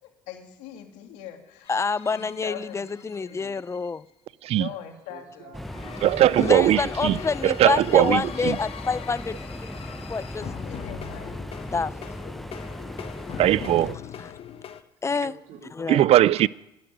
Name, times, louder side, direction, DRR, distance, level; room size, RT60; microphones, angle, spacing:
voice 1, 0.0-1.7 2.1-3.6 4.5-5.6 10.5-11.4 11.7-13.0 13.7-14.4, left 9 dB, 75° left, 2.5 m, -43 dB
sound 1, 1.7-3.9 5.6-14.8, left 9 dB, 55° left, 1.2 m, -41 dB
voice 2, 1.7-4.0 6.4-9.7 10.1-10.5 11.7-11.9 14.2-14.3 15.0-15.3 15.8-16.1, left 4 dB, 25° left, 0.6 m, -27 dB
voice 3, 5.1-6.0 6.4-7.5 15.1-16.0, right 6 dB, 75° right, 3.5 m, -48 dB
sound 2, 5.5-14.0, left 1 dB, ahead, 0.9 m, -37 dB
voice 4, 6.0-7.2 7.4-8.6 13.4-14.0 15.9-16.5, right 13 dB, 60° right, 0.5 m, -19 dB
13.0 x 10.5 x 9.3 m
supercardioid pair, 70°, 12 cm